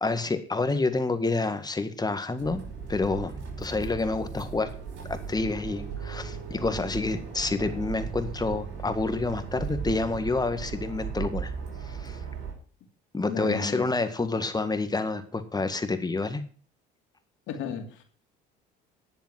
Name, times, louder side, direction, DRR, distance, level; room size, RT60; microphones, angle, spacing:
voice 1, 0.0-2.6 2.9-3.3 3.6-4.7 5.1-11.5 11.8-12.2 13.1-16.4, left 3 dB, 20° left, 1.8 m, -28 dB
sound 1, 2.4-12.5, right 6 dB, 65° right, 5.3 m, -37 dB
voice 2, 13.3-13.8 17.5-18.0, left 5 dB, 70° left, 2.6 m, -34 dB
10.5 x 7.2 x 7.6 m
supercardioid pair, 75°, 21 cm